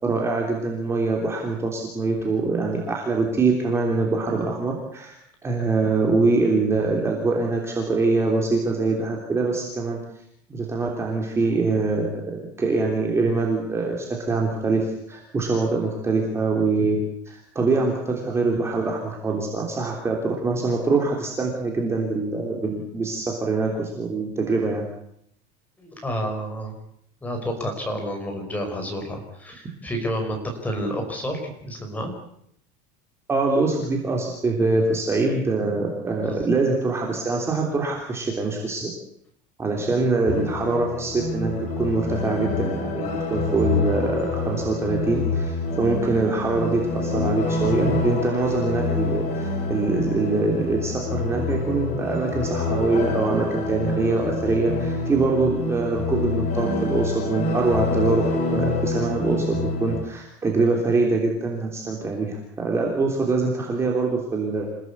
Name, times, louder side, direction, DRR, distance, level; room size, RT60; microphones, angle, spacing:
voice 1, 0.0-5.1 5.4-10.0 10.5-24.9 33.3-38.9 39.6-58.2 58.5-64.7, right 3 dB, 10° right, 0 dB, 3.3 m, -24 dB
voice 2, 25.8-26.7 27.2-32.1 36.3-36.4, equal, 5° left, 3 dB, 5.0 m, -30 dB
sound 1, 40.3-60.0, left 3 dB, 35° left, 6.1 m, -27 dB
27.5 x 17.0 x 8.4 m, 0.72 s
cardioid pair, 175°, 21 cm